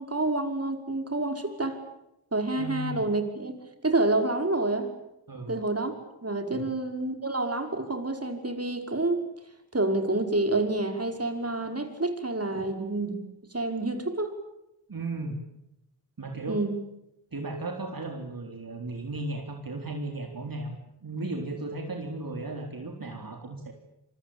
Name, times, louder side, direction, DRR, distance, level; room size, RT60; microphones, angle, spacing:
voice 1, 0.0-1.8 2.3-3.6 3.8-4.9 5.5-5.9 6.2-9.2 9.7-13.1 13.5-14.4 16.5-16.8, right 2 dB, 35° right, 6 dB, 5.4 m, -28 dB
voice 2, 2.6-2.9 5.3-5.6 6.5-6.7 12.5-12.6 14.9-15.4 16.2-16.6 17.3-20.7 21.0-23.7, right 2 dB, 55° right, 2 dB, 4.0 m, -35 dB
27.5 x 24.0 x 8.9 m, 0.85 s
wide cardioid pair, 55°, 41 cm